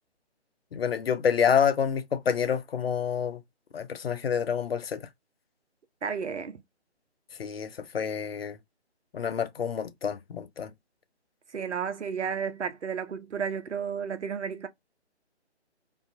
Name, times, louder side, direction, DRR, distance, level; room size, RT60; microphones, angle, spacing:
voice 1, 0.7-3.4 3.7-5.1 7.4-8.6 9.1-10.7, left 7 dB, 60° left, 0.5 m, -28 dB
voice 2, 6.0-6.6 11.5-14.7, right 6 dB, 80° right, 0.7 m, -32 dB
2.5 x 2.3 x 2.6 m
figure-of-eight pair, 145°, 34 cm